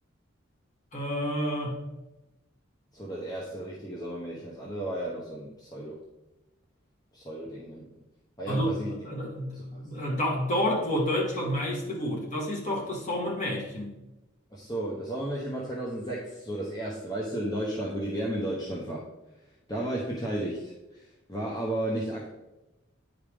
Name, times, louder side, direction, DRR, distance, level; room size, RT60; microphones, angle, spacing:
voice 1, 0.9-1.8 8.5-8.7 9.0-14.0, equal, 40° left, -1 dB, 1.7 m, -29 dB
voice 2, 2.9-6.0 7.1-8.0 8.4-8.9 9.5-9.8 14.5-19.1 19.7-22.3, right 1 dB, 20° left, -5 dB, 1.0 m, -33 dB
9.6 x 5.0 x 3.6 m, 1.0 s
head